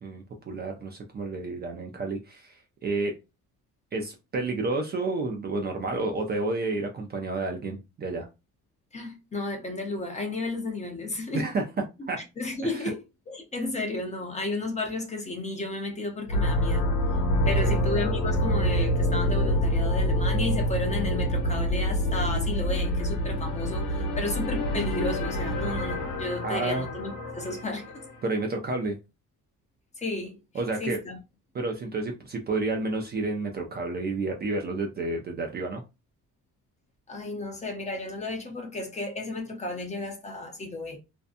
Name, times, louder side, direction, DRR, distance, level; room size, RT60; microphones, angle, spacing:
voice 1, 0.0-3.1 3.9-8.3 11.3-11.6 12.1-12.2 12.6-12.9 17.6-17.8 26.4-26.9 28.2-29.0 30.5-31.0 31.5-35.8, right 3 dB, 30° right, 0.4 m, -30 dB
voice 2, 8.9-11.5 12.4-13.0 13.3-16.9 17.5-28.1 30.0-30.4 30.8-31.2 37.1-41.0, left 2 dB, 20° left, 0.7 m, -33 dB
sound 1, 16.3-28.2, equal, 85° left, 1.0 m, -26 dB
2.6 x 2.2 x 2.5 m
cardioid pair, 125°, 32 cm